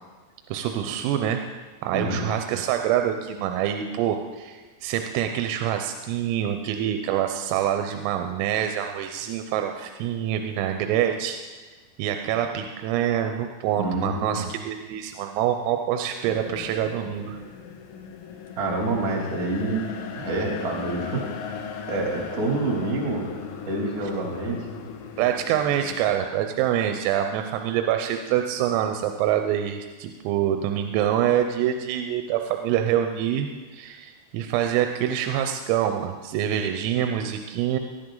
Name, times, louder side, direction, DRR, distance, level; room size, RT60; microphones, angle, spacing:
voice 1, 0.5-1.4 1.8-11.4 12.0-17.4 25.2-37.8, right 10 dB, 90° right, 5 dB, 3.4 m, -26 dB
voice 2, 13.8-14.5 18.5-19.8 20.1-21.2 21.9-23.3 23.6-24.7, right 2 dB, 35° right, -1 dB, 1.5 m, -27 dB
sound 1, 16.3-26.2, left 7 dB, 75° left, 3.3 m, -38 dB
18.5 x 11.5 x 3.8 m, 1.3 s
omnidirectional pair, 5.8 m